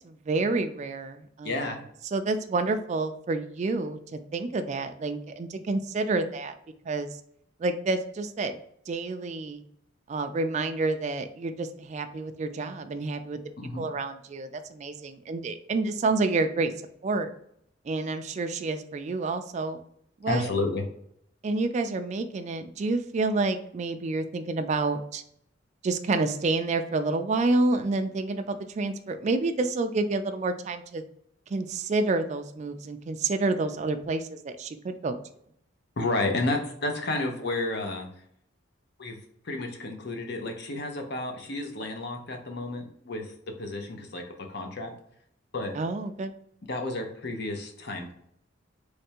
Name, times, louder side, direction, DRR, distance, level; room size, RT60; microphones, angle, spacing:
voice 1, 0.0-1.8 2.1-6.5 6.9-7.1 7.6-8.6 8.9-9.6 10.1-13.4 13.8-16.7 17.0-17.3 17.9-19.8 20.2-20.5 21.4-25.2 25.8-31.0 31.5-35.2 45.7-46.3, right 3 dB, 35° right, 7 dB, 0.3 m, -29 dB
voice 2, 1.4-1.8 13.6-13.9 20.3-20.8 36.0-38.1 39.0-39.2 39.4-43.3 43.6-44.2 44.5-44.9 45.5-45.8 46.7-48.1, left 2 dB, 55° left, 3 dB, 0.7 m, -31 dB
3.4 x 3.2 x 2.8 m, 0.69 s
head